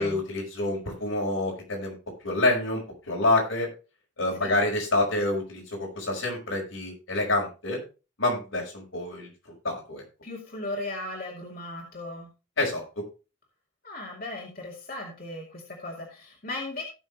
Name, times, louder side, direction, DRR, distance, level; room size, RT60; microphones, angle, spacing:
voice 1, 0.0-2.0 2.2-2.8 3.1-3.7 4.2-7.8 8.2-9.3 9.6-10.0 12.6-13.0, left 2 dB, 80° left, -1 dB, 5.2 m, -27 dB
voice 2, 10.2-12.3 13.8-16.8, left 2 dB, 45° left, -1 dB, 2.5 m, -37 dB
17.0 x 6.3 x 3.2 m, 0.31 s
head